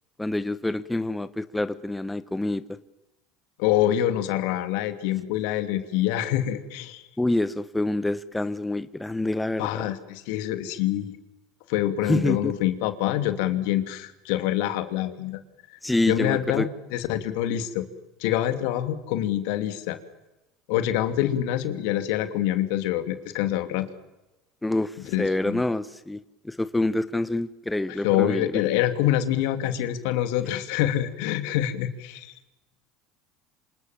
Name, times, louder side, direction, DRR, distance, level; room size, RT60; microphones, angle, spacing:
voice 1, 0.2-2.8 7.2-9.9 12.1-12.5 15.8-16.7 24.6-28.6, left 2 dB, 10° left, 13 dB, 1.3 m, -27 dB
voice 2, 3.6-7.0 9.6-11.1 11.7-15.4 15.7-15.8 16.1-17.9 18.2-20.0 20.7-23.9 25.1-25.6 28.0-32.3, left 12 dB, 70° left, 10 dB, 2.7 m, -26 dB
27.0 x 27.0 x 7.5 m, 1.0 s
hypercardioid pair, 75°, 0 cm